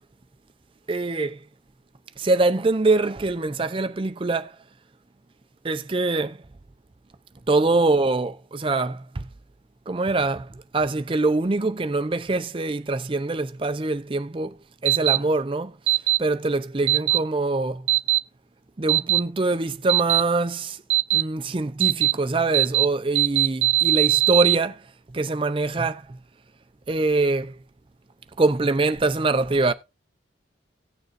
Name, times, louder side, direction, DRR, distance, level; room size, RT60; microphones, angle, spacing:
voice 1, 0.9-1.4 2.2-4.5 5.6-6.4 7.5-9.2 9.9-14.6 14.8-15.7 16.2-17.8 18.8-20.8 21.1-24.8 25.1-26.2 26.9-27.5 28.4-29.7, right 3 dB, 25° right, 0.5 m, -24 dB
sound 1, 14.9-15.2 15.9-16.2 16.9-17.2 17.9-18.2 18.9-19.2 19.9-20.2 20.9-21.2 21.8-22.1 22.5-22.9 23.2-24.6, right 16 dB, 85° right, 0.6 m, -19 dB
17.0 x 6.6 x 2.5 m
head